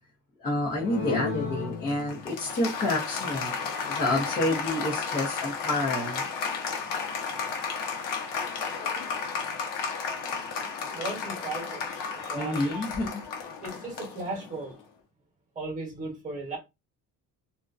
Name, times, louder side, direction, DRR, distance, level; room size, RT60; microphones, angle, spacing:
voice 1, 0.4-3.5 3.9-6.3 12.3-13.2, left 1 dB, 30° left, 0.6 m, -29 dB
Applause, 0.7-14.7, left 5 dB, 80° left, 0.8 m, -33 dB
voice 2, 10.9-12.8 13.6-14.8 15.5-16.6, right 2 dB, 25° right, 1.1 m, -36 dB
2.5 x 2.1 x 2.4 m
cardioid pair, 180°, 32 cm